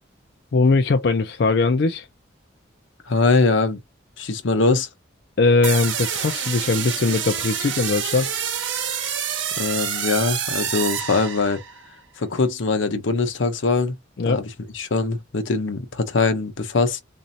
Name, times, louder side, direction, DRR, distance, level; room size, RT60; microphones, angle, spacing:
voice 1, 0.5-2.1 5.4-8.3 14.2-14.4, left 3 dB, 55° left, 0.4 m, -20 dB
voice 2, 3.1-3.8 4.2-4.9 9.6-11.6 12.2-14.0 14.2-14.5 14.7-17.0, left 3 dB, 80° left, 0.8 m, -22 dB
sound 1, 5.6-11.8, right 8 dB, 75° right, 0.9 m, -27 dB
4.1 x 2.6 x 2.6 m
head